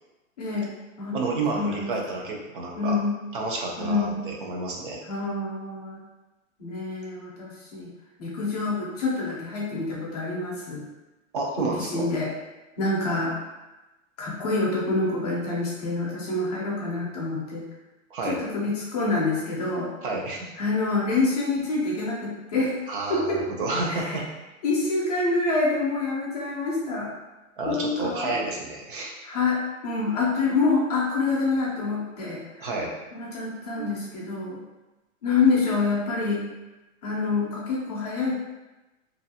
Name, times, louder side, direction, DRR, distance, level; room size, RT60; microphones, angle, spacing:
voice 1, 0.4-1.2 1.5-1.9 2.8-3.1 3.8-4.2 5.1-6.0 6.6-7.9 8.2-10.8 11.6-12.3 12.8-13.3 14.2-17.6 18.3-19.9 20.6-22.8 23.1-23.4 23.9-24.2 24.6-27.1 27.6-28.4 29.2-32.7 33.1-34.6 35.2-36.5 37.0-38.3, left 3 dB, 30° left, -4 dB, 0.5 m, -26 dB
voice 2, 1.1-3.0 3.3-5.0 11.3-12.1 18.1-18.4 20.0-20.5 22.9-24.3 27.6-29.3 32.6-32.9 33.7-33.9, right 3 dB, 40° right, -1 dB, 0.5 m, -30 dB
2.6 x 2.4 x 2.7 m, 1.1 s
hypercardioid pair, 170°, 40 cm